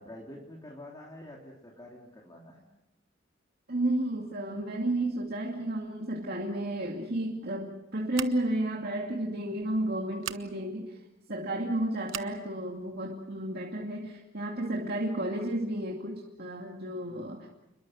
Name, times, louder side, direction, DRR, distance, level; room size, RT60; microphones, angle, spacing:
voice 1, 0.0-2.7 16.9-17.3, left 1 dB, 20° left, -2 dB, 3.0 m, -47 dB
voice 2, 3.7-11.0 11.3-17.5, right 1 dB, 55° right, 0 dB, 2.4 m, -32 dB
Scissors, 8.1-8.6 10.2-10.4 12.1-12.4, right 10 dB, 80° right, 1.1 m, -38 dB
29.0 x 22.0 x 6.5 m, 0.95 s
head